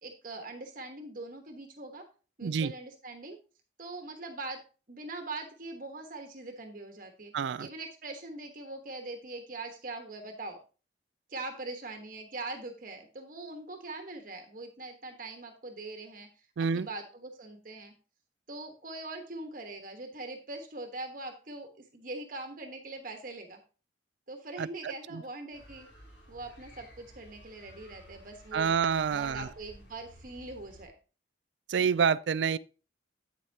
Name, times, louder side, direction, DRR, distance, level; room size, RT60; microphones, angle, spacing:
voice 1, 0.0-2.1 2.4-3.4 3.8-4.6 4.9-7.3 7.6-10.6 11.3-16.3 16.6-17.9 18.5-23.6 24.3-25.9 26.3-28.7 29.1-30.9, right 2 dB, 50° right, 1.3 m, -42 dB
voice 2, 2.4-2.7 7.3-7.7 16.6-16.9 24.6-25.2 28.5-29.5 31.7-32.6, right 6 dB, 75° right, 0.4 m, -28 dB
sound 1, 25.5-30.9, equal, 75° left, 3.3 m, -54 dB
8.7 x 8.0 x 2.8 m
head